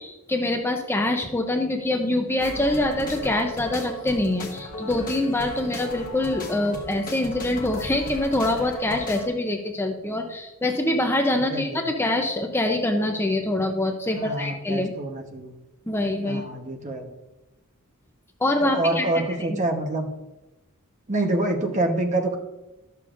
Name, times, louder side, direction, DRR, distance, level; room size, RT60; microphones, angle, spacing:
voice 1, 0.0-14.9 15.9-16.4 18.4-19.1 19.4-19.5, left 1 dB, 10° left, 3 dB, 0.5 m, -25 dB
sound 1, 2.4-9.2, left 1 dB, 40° left, 1.3 m, -36 dB
voice 2, 11.5-11.8 14.1-15.5 16.3-17.1 18.6-20.1 21.1-22.4, right 2 dB, 35° right, 4 dB, 0.9 m, -26 dB
11.5 x 6.8 x 2.5 m, 0.98 s
head